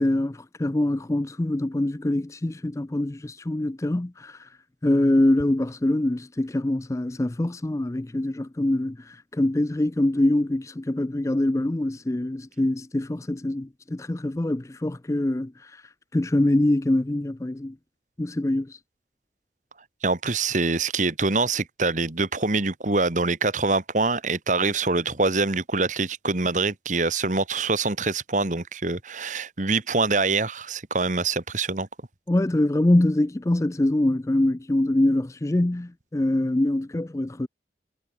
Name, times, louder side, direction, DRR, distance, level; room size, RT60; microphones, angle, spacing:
voice 1, 0.0-4.5 4.8-15.8 16.1-17.8 18.2-18.8 32.3-37.5, left 1 dB, 15° left, 0.4 m, -24 dB
voice 2, 20.0-31.9, right 3 dB, 45° right, 1.7 m, -25 dB
head